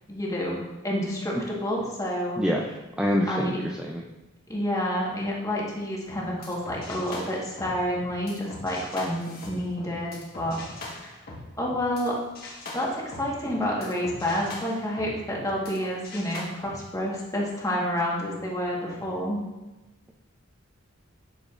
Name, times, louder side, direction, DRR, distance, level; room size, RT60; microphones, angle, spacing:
voice 1, 0.1-2.4 3.3-3.6 4.5-10.6 11.0-11.1 11.6-12.1 12.7-19.4, equal, 15° left, -3 dB, 1.3 m, -29 dB
voice 2, 3.0-4.0, equal, 5° right, -1 dB, 0.4 m, -26 dB
sound 1, 6.0-12.1 12.3-15.8 16.0-16.4, left 2 dB, 50° left, 1.3 m, -41 dB
7.7 x 6.3 x 2.4 m, 1.1 s
head